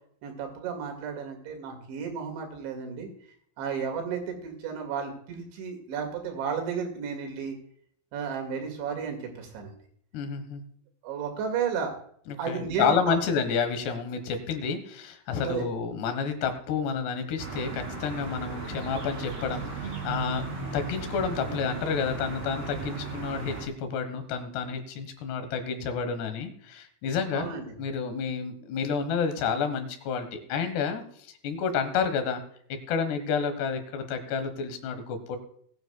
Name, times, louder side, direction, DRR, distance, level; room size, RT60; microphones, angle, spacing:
voice 1, 0.2-3.1 3.6-7.6 8.1-9.8 11.0-11.9 12.4-13.2 15.4-15.7 27.3-27.7, right 6 dB, 80° right, 4 dB, 4.4 m, -33 dB
voice 2, 10.1-10.6 12.3-20.4 20.7-27.5 27.8-31.0 31.4-32.4 32.9-35.4, left 6 dB, 70° left, 8 dB, 3.3 m, -30 dB
sound 1, 17.4-23.7, right 4 dB, 35° right, 3.9 m, -36 dB
20.0 x 9.5 x 2.3 m, 0.64 s
omnidirectional pair, 5.3 m